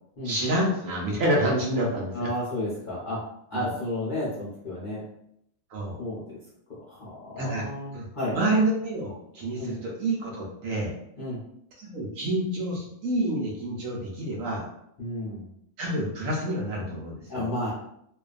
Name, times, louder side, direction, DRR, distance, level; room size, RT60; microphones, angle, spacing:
voice 1, 0.2-2.3 3.5-3.7 5.7-6.0 7.4-7.6 7.9-10.9 11.8-14.7 15.8-17.5, right 1 dB, 65° right, -2 dB, 0.9 m, -28 dB
voice 2, 2.1-3.2 3.5-5.0 6.0-6.4 6.9-8.3 9.6-9.7 11.2-11.4 15.0-15.4 17.3-17.7, left 1 dB, 55° left, -10 dB, 0.5 m, -32 dB
2.6 x 2.3 x 2.4 m, 0.74 s
omnidirectional pair, 1.7 m